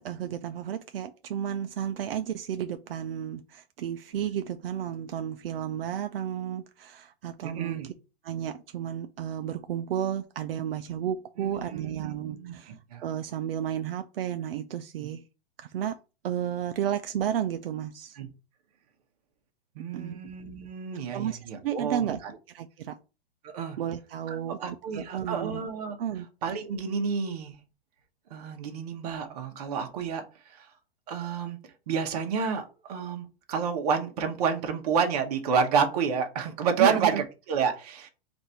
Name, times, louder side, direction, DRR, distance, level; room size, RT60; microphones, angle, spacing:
voice 1, 0.0-7.9 8.2-12.8 13.0-15.2 15.6-16.0 16.2-18.2 19.9-20.2 21.1-22.2 22.5-23.0 23.8-25.6 26.0-26.3 36.8-37.2, right 9 dB, 70° right, 0.5 m, -32 dB
voice 2, 7.4-7.9 11.4-13.0 15.0-15.1 18.2-18.3 19.7-22.2 23.4-23.8 24.3-26.0 26.4-27.5 28.3-30.7 31.1-31.6 31.9-38.1, right 6 dB, 40° right, 0.9 m, -30 dB
4.0 x 2.6 x 4.3 m
hypercardioid pair, 165°, 30 cm